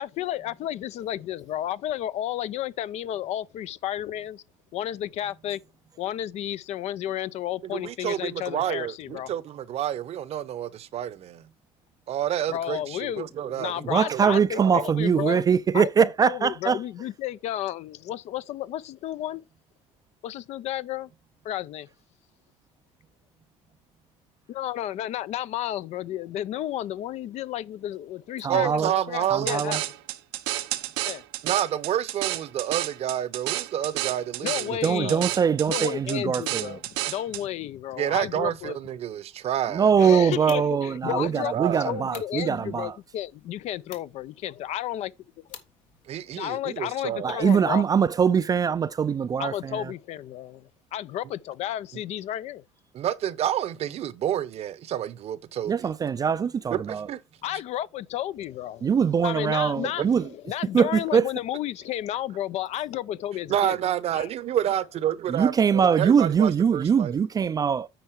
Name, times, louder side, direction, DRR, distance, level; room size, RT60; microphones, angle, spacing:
voice 1, 0.0-4.4 4.7-5.6 6.0-9.3 12.5-15.4 15.7-19.4 20.2-21.1 21.4-21.9 24.5-29.8 31.0-31.2 34.4-35.3 35.7-38.8 40.0-41.5 41.8-45.1 46.4-47.8 49.4-52.6 57.4-58.9 59.2-60.1 60.5-63.8 64.1-64.3, left 12 dB, 60° left, 0.5 m, -32 dB
voice 2, 7.6-11.5 12.1-14.9 28.5-29.6 31.4-34.7 35.0-35.3 38.0-40.3 41.1-42.0 46.1-47.4 52.9-55.9 56.9-57.2 60.0-60.1 63.5-67.1, right 11 dB, 55° right, 0.8 m, -29 dB
voice 3, 13.8-16.8 28.4-28.9 29.3-29.8 34.8-36.8 39.7-42.9 47.2-49.9 55.7-57.1 58.8-60.2 60.7-61.3 65.3-67.9, right 7 dB, 30° right, 0.4 m, -22 dB
sound 1, 29.5-37.4, right 16 dB, 90° right, 0.7 m, -31 dB
sound 2, 40.1-46.5, left 8 dB, 80° left, 1.6 m, -51 dB
9.1 x 4.6 x 4.7 m
supercardioid pair, 95°, 13 cm